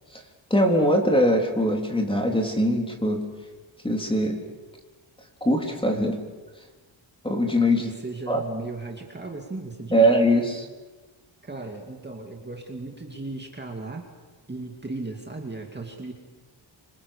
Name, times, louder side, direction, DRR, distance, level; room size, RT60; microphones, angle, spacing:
voice 1, 0.5-3.2 3.8-4.3 5.4-6.2 7.2-7.8 8.3-8.4 9.9-10.7, equal, 10° left, 2 dB, 3.8 m, -21 dB
voice 2, 7.8-10.1 11.4-14.1 14.5-16.1, right 3 dB, 20° right, 1 dB, 2.5 m, -36 dB
26.0 x 26.0 x 6.7 m, 1.3 s
wide cardioid pair, 130°, 48 cm